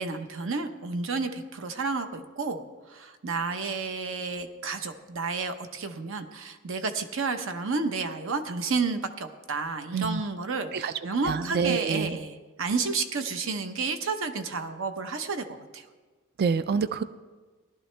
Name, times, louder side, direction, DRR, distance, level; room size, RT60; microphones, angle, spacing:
voice 1, 0.0-2.6 2.9-15.8, right 4 dB, 65° right, 8 dB, 0.9 m, -31 dB
voice 2, 11.2-12.2 16.4-17.0, right 5 dB, 50° right, 13 dB, 0.4 m, -27 dB
17.0 x 12.0 x 3.3 m, 1.3 s
head